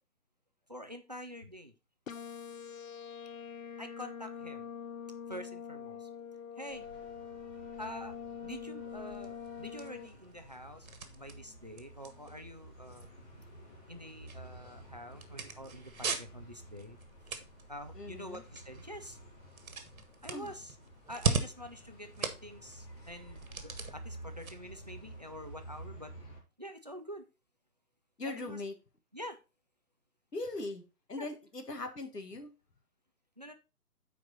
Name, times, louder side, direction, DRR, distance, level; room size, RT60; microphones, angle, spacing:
voice 1, 0.7-1.7 3.8-4.7 5.3-6.1 6.6-6.9 7.8-8.2 8.4-13.1 13.9-17.0 17.3-19.2 20.2-20.8 21.1-26.1 26.6-27.3 28.2-28.6 29.1-29.4 31.2-31.3 33.4-33.5, equal, 30° right, 9 dB, 0.4 m, -46 dB
sound 1, 2.1-10.1, left 7 dB, 60° left, 0.7 m, -44 dB
sound 2, 6.7-26.4, right 1 dB, 30° left, 2.8 m, -52 dB
sound 3, 8.9-25.9, right 4 dB, 60° right, 1.5 m, -42 dB
voice 2, 17.9-18.4 20.3-20.5 28.2-28.8 30.3-30.8 31.1-32.5, left 2 dB, 90° left, 7 dB, 1.7 m, -40 dB
8.7 x 4.7 x 4.0 m, 0.29 s
figure-of-eight pair, 150°, 47 cm